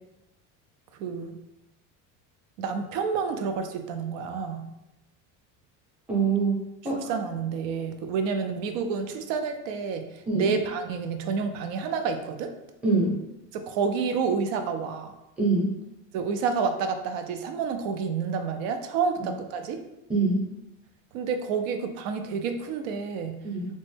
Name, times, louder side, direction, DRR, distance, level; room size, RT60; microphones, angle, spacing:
voice 1, 1.0-1.4 2.6-4.7 6.9-12.5 13.5-15.1 16.1-19.8 21.1-23.4, right 5 dB, 90° right, 6 dB, 0.5 m, -29 dB
voice 2, 6.1-6.5 6.8-7.0 10.3-10.5 12.8-13.2 15.4-15.7 19.2-19.3 20.1-20.4 23.4-23.7, right 3 dB, 5° right, -5 dB, 0.6 m, -24 dB
3.0 x 2.1 x 3.2 m, 0.90 s
cardioid pair, 155°, 37 cm